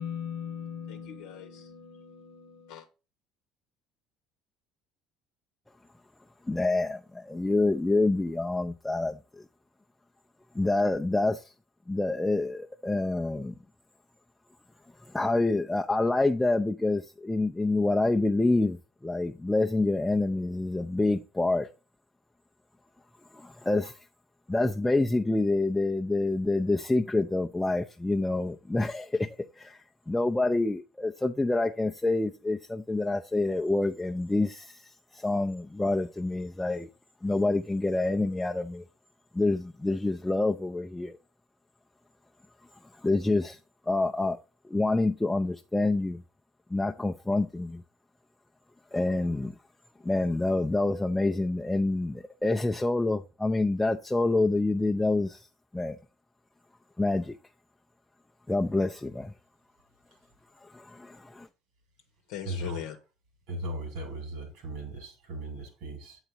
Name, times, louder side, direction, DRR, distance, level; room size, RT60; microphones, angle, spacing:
voice 1, 0.0-2.8 62.3-63.0, left 8 dB, 75° left, 0.8 m, -39 dB
voice 2, 6.5-9.2 10.5-11.5 11.9-13.5 15.1-21.7 23.3-23.9 24.5-29.3 29.6-36.9 37.2-38.8 39.3-41.2 43.0-43.6 43.8-44.4 44.7-46.2 46.7-47.8 48.9-49.6 50.0-55.5 55.7-56.0 57.0-57.4 58.5-59.3 60.6-61.5, left 2 dB, 10° left, 0.5 m, -27 dB
voice 3, 62.5-62.8 63.5-66.2, right 1 dB, 70° right, 2.7 m, -37 dB
7.8 x 4.0 x 4.5 m
hypercardioid pair, 65°, 0 cm